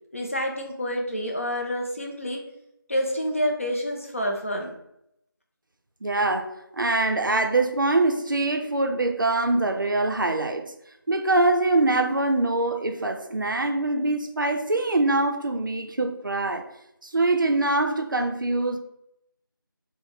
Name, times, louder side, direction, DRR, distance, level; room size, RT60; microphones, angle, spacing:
voice 1, 0.1-2.4 2.9-4.8, equal, 35° left, 1 dB, 0.4 m, -28 dB
voice 2, 6.0-6.5 6.8-10.6 11.1-16.6 17.0-18.8, right 2 dB, 60° right, 5 dB, 0.4 m, -23 dB
3.2 x 2.0 x 3.4 m, 0.79 s
figure-of-eight pair, 170°, 12 cm